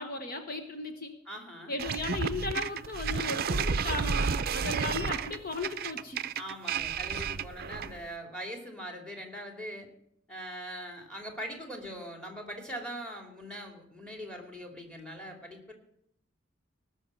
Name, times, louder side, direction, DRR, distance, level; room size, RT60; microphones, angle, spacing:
voice 1, 0.0-1.2 1.7-6.2, left 3 dB, 50° left, 6 dB, 1.2 m, -36 dB
voice 2, 1.3-1.8 6.4-9.9 10.3-15.7, equal, 5° left, 4 dB, 2.6 m, -41 dB
sound 1, 1.8-8.0, right 6 dB, 50° right, 0.5 m, -31 dB
19.0 x 6.5 x 7.6 m, 0.73 s
head